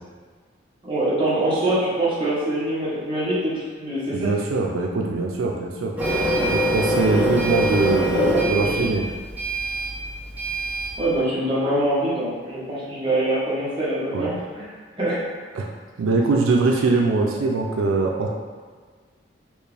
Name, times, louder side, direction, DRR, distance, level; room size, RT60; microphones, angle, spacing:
voice 1, 0.8-4.4 6.7-7.2 7.9-8.9 11.0-14.7 15.0-15.2, right 1 dB, 25° right, -9 dB, 1.1 m, -24 dB
voice 2, 4.1-5.9 6.5-9.0 14.1-14.3 15.6-15.7 16.0-18.3, right 3 dB, 90° right, 0 dB, 0.4 m, -22 dB
Printer, 6.0-11.0, right 1 dB, 10° right, 0.6 m, -24 dB
4.4 x 2.4 x 3.4 m, 1.6 s
head